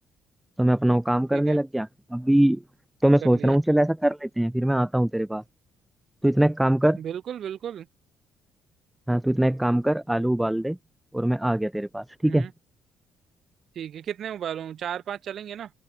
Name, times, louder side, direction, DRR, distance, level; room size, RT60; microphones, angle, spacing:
voice 1, 0.6-2.6 3.0-5.4 6.2-7.0 9.1-10.8 11.1-12.5, right 1 dB, 5° right, 0.4 m, -22 dB
voice 2, 3.2-3.6 7.0-7.9 12.2-12.5 13.7-15.7, right 9 dB, 60° right, 1.2 m, -34 dB
hypercardioid pair, 50°, 0 cm